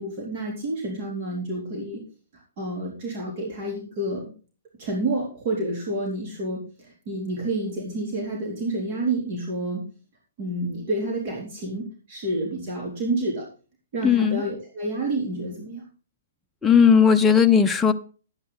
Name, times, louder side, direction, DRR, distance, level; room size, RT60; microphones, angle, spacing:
voice 1, 0.0-2.0 2.6-4.3 4.8-9.8 10.4-13.5 13.9-15.8, right 2 dB, 45° right, 3.8 m, -29 dB
voice 2, 14.0-14.4 16.6-17.9, left 7 dB, 10° left, 0.8 m, -17 dB
12.0 x 9.8 x 4.1 m
figure-of-eight pair, 125°, 0 cm